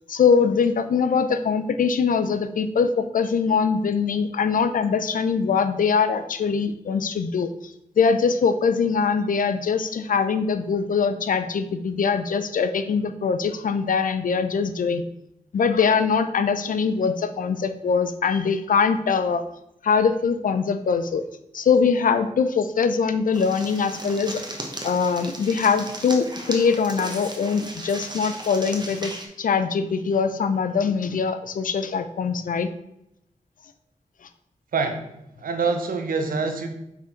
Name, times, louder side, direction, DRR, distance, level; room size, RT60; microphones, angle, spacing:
voice 1, 0.1-15.0 15.5-19.4 19.8-21.3 21.5-24.4 24.8-29.1 29.4-32.7, left 5 dB, 70° left, 9 dB, 0.5 m, -22 dB
sound 1, 23.3-29.3, right 1 dB, 30° right, 1.2 m, -36 dB
voice 2, 34.7-35.0 35.4-36.7, right 4 dB, 85° right, 6 dB, 0.8 m, -25 dB
6.0 x 3.8 x 4.4 m, 0.82 s
cardioid pair, 60°, 14 cm